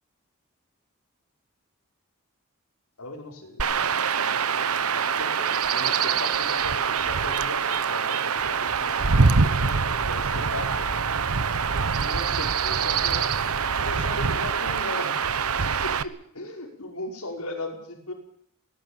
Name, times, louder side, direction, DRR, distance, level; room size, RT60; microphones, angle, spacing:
voice 1, 3.0-4.5 4.9-8.4 8.8-10.9 12.0-15.2 15.8-18.1, left 2 dB, 85° left, 2 dB, 5.4 m, -38 dB
Chirp tweet / Wind / Stream, 3.6-16.0, right 5 dB, 85° right, 1.0 m, -24 dB
19.0 x 18.0 x 9.1 m, 0.68 s
head